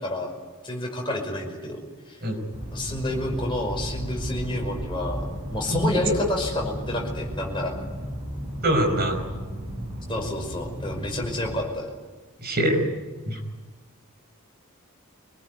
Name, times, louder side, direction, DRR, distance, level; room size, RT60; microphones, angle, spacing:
voice 1, 0.0-0.3 0.6-1.8 2.1-2.2 2.7-7.7 10.1-11.9, left 1 dB, 25° left, 0 dB, 5.5 m, -29 dB
sound 1, 2.5-11.6, equal, 20° right, 6.8 m, -34 dB
voice 2, 8.6-9.3 12.4-12.9 13.3-13.4, right 1 dB, 45° right, 3 dB, 5.0 m, -23 dB
25.0 x 20.0 x 9.4 m, 1.3 s
head